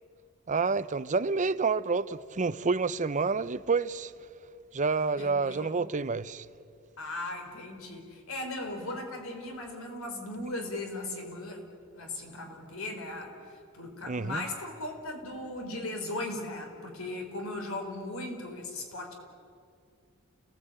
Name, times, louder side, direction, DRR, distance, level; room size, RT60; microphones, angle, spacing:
voice 1, 0.5-4.1 4.7-6.5 14.0-14.4, right 4 dB, 35° right, 0.7 m, -28 dB
voice 2, 5.2-5.7 7.0-11.6 11.9-19.1, left 2 dB, 70° left, 4.2 m, -38 dB
29.5 x 18.0 x 9.0 m
head